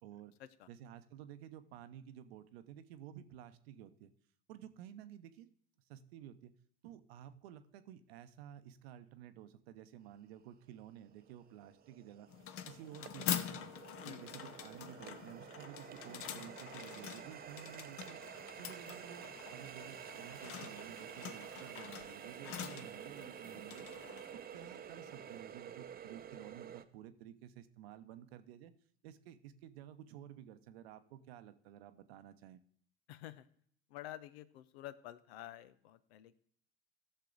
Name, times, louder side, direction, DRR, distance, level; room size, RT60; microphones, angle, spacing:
voice 1, 0.0-0.3 0.7-4.1 4.5-5.5 5.9-6.5 6.8-12.3 12.7-13.8 14.0-18.2 18.6-23.8 24.5-28.7 29.0-32.6, right 10 dB, 75° right, 11 dB, 0.9 m, -53 dB
Water tap faucet, 10.4-10.5 11.0-26.8, right 8 dB, 30° right, 0.7 m, -50 dB
sound 1, 12.3-25.4, left 10 dB, 45° left, 0.8 m, -45 dB
voice 2, 33.1-33.5 33.9-36.4, left 13 dB, 80° left, 15 dB, 0.7 m, -50 dB
14.5 x 6.6 x 3.9 m, 0.62 s
hypercardioid pair, 80°, 31 cm